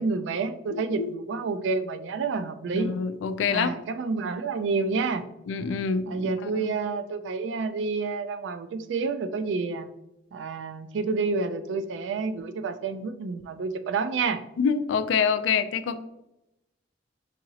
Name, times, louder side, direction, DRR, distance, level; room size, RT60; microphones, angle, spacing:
voice 1, 0.0-2.9 3.5-5.2 6.1-9.9 10.3-14.4, right 4 dB, 75° right, 10 dB, 0.3 m, -29 dB
voice 2, 0.7-1.1 2.7-3.7 5.5-6.7 14.6-16.0, left 6 dB, 85° left, 11 dB, 0.3 m, -26 dB
4.0 x 2.8 x 2.7 m, 0.88 s
head